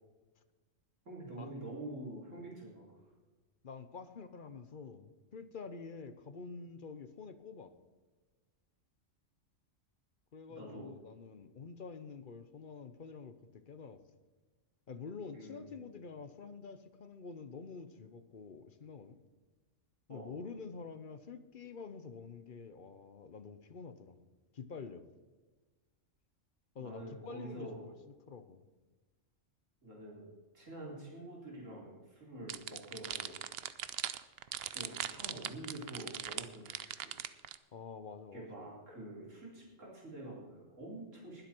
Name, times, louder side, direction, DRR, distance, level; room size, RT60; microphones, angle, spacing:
voice 1, 1.1-3.1 10.6-10.9 15.3-15.8 20.1-20.4 26.8-27.9 29.8-30.2 30.5-33.4 34.7-37.1 38.3-41.5, right 1 dB, 75° right, -4 dB, 4.3 m, -47 dB
voice 2, 3.6-7.7 10.3-14.0 14.9-19.2 20.1-24.2 24.5-25.0 26.7-27.9 28.3-28.6 37.7-38.8, left 5 dB, 45° left, 11 dB, 0.9 m, -48 dB
sound 1, 32.5-37.6, right 10 dB, 60° right, 0.7 m, -40 dB
20.5 x 8.0 x 4.5 m, 1.3 s
omnidirectional pair, 1.3 m